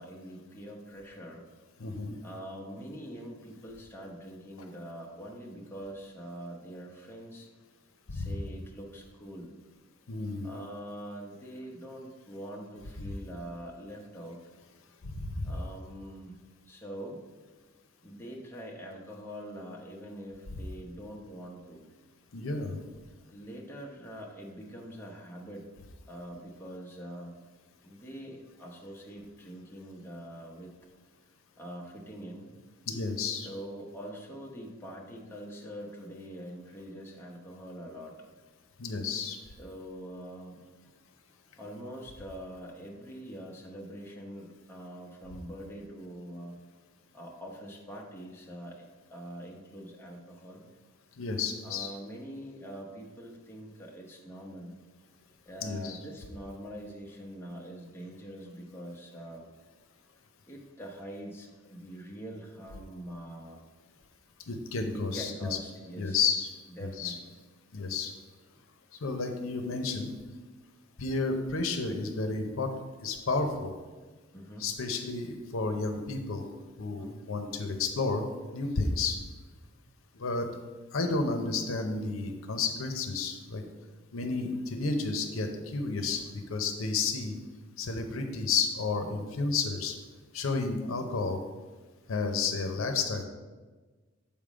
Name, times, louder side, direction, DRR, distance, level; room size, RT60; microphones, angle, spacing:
voice 1, 0.0-1.4 2.2-7.5 8.1-9.5 10.4-14.4 15.4-16.4 16.6-17.2 18.0-21.8 23.2-25.7 26.1-27.3 27.8-30.8 31.6-32.5 33.4-38.2 39.6-40.6 41.6-46.6 47.1-50.6 51.6-54.8 55.4-59.5 60.5-63.6 64.9-66.2 66.7-67.2 74.3-74.7 77.0-77.2 79.7-79.8, equal, 10° left, -2 dB, 0.9 m, -44 dB
voice 2, 1.8-2.1 8.1-8.3 10.1-10.5 15.0-15.5 22.3-22.8 32.9-33.5 38.8-39.4 51.2-51.9 55.6-56.0 64.5-65.5 66.0-66.5 66.8-67.1 67.7-68.1 69.0-70.1 71.0-72.7 73.0-73.7 74.6-76.4 76.8-78.3 78.5-79.2 80.1-80.5 80.9-83.6 84.1-87.4 87.8-90.0 90.3-91.4 92.1-93.2, left 4 dB, 80° left, 5 dB, 0.7 m, -31 dB
7.2 x 3.6 x 5.0 m, 1.3 s
head